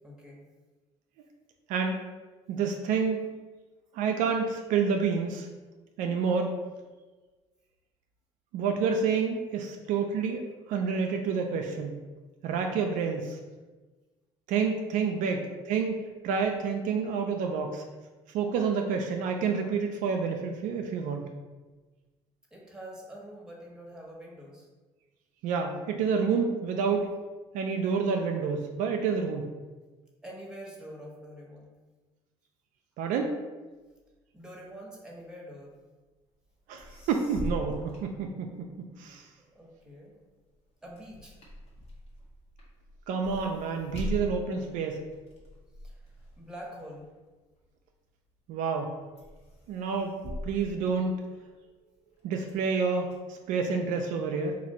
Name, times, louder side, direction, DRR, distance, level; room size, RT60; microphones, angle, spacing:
voice 1, 0.0-0.4 22.5-24.7 30.2-31.7 34.3-35.8 39.5-40.1 40.8-41.4 45.8-46.1 46.4-47.1, equal, 5° right, -3 dB, 1.2 m, -45 dB
voice 2, 2.5-3.2 3.9-5.5 6.0-6.5 8.5-12.0 12.4-13.4 14.5-17.8 18.3-21.3 25.4-27.1 27.5-29.5 33.0-33.4 36.7-38.7 39.0-39.3 43.1-45.0 48.5-48.9 49.7-51.1 52.2-54.6, right 5 dB, 70° right, 4 dB, 0.4 m, -29 dB
sound 1, 36.5-36.6 36.8-38.9 39.3-48.0 48.5-48.9 49.2-51.7 52.1-53.1, left 1 dB, 50° left, 1.2 m, -42 dB
3.0 x 2.5 x 4.1 m, 1.3 s
supercardioid pair, 75°, 14 cm